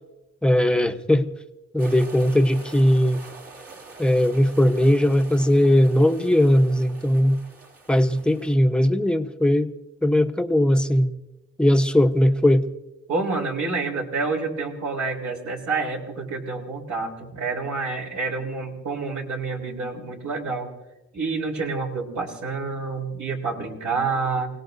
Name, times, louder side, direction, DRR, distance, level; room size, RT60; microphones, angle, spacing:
voice 1, 0.4-1.3 1.7-3.2 4.0-7.4 7.9-9.7 10.0-11.1 11.6-12.6, left 1 dB, 5° left, 7 dB, 1.0 m, -19 dB
sound 1, 1.8-8.6, right 3 dB, 50° right, 2.8 m, -45 dB
voice 2, 13.1-20.7 21.1-24.5, right 4 dB, 65° right, 0 dB, 3.6 m, -28 dB
29.0 x 18.0 x 2.7 m, 1.0 s
cardioid pair, 90°, 30 cm